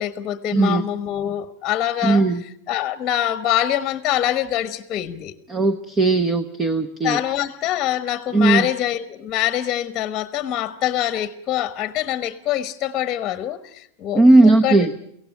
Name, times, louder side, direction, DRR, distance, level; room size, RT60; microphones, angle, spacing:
voice 1, 0.0-2.3 2.7-5.4 7.0-14.9, left 12 dB, 30° left, 1.1 m, -24 dB
voice 2, 0.5-0.8 2.0-2.4 5.5-7.2 8.3-8.7 14.1-14.9, right 2 dB, 20° right, 1.0 m, -16 dB
23.5 x 17.0 x 9.2 m
supercardioid pair, 140°, 0 cm